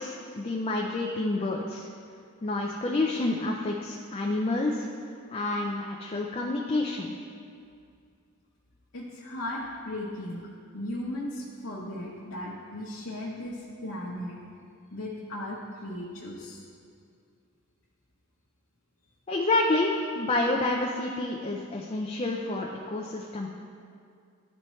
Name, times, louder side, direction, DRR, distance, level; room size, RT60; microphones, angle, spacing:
voice 1, 0.0-1.9 2.4-4.9 5.3-7.1 19.3-23.5, left 2 dB, 30° left, 0 dB, 0.4 m, -28 dB
voice 2, 8.9-10.4 10.7-14.4 14.9-16.6, left 1 dB, 60° left, -6 dB, 0.9 m, -36 dB
11.0 x 4.3 x 3.1 m, 2.3 s
head